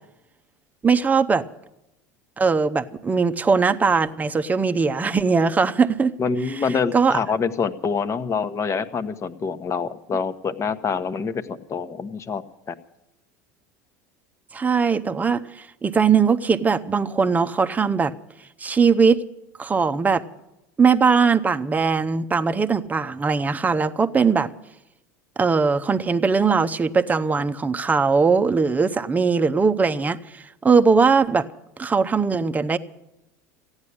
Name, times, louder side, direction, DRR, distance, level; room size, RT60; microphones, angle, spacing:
voice 1, 0.8-1.4 2.4-6.1 6.9-7.2 14.5-18.1 18.6-19.2 19.6-20.2 20.8-24.5 25.4-31.5 31.8-32.8, right 5 dB, 15° right, 0.7 m, -20 dB
voice 2, 6.2-12.4 12.7-12.8, left 5 dB, 30° left, 1.1 m, -26 dB
15.0 x 9.7 x 9.9 m
hypercardioid pair, 90°, 9 cm